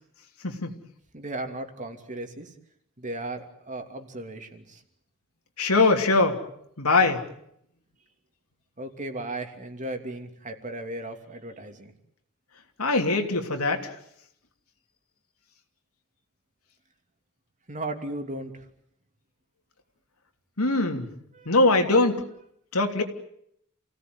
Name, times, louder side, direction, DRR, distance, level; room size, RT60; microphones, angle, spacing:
voice 1, 0.4-0.8 5.6-6.4 6.8-7.2 12.8-13.9 20.6-21.1 21.4-22.2 22.7-23.0, left 3 dB, 90° left, 4 dB, 3.2 m, -22 dB
voice 2, 1.1-2.5 3.0-4.8 8.8-11.9 17.7-18.7 21.3-21.6, right 2 dB, 35° right, 6 dB, 2.9 m, -36 dB
29.0 x 17.5 x 9.7 m, 0.74 s
head